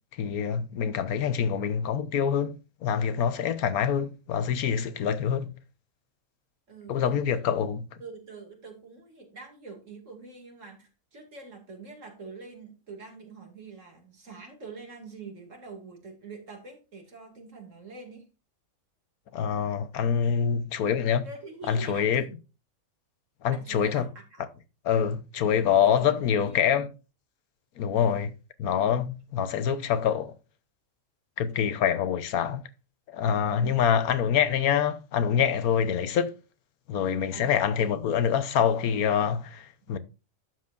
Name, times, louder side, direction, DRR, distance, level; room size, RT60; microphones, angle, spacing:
voice 1, 0.2-2.5 2.8-5.5 6.9-7.9 19.3-21.3 21.7-22.2 23.4-24.0 24.8-26.9 27.8-28.3 28.6-30.3 31.4-32.6 33.1-36.3 36.9-40.0, left 8 dB, 90° left, 1.3 m, -25 dB
voice 2, 6.7-7.2 8.0-18.2 21.2-22.3 23.5-24.5 25.5-26.8 28.0-28.2 33.5-33.8 37.3-37.9 39.9-40.0, right 4 dB, 60° right, 2.7 m, -45 dB
11.5 x 7.6 x 2.5 m
omnidirectional pair, 1.5 m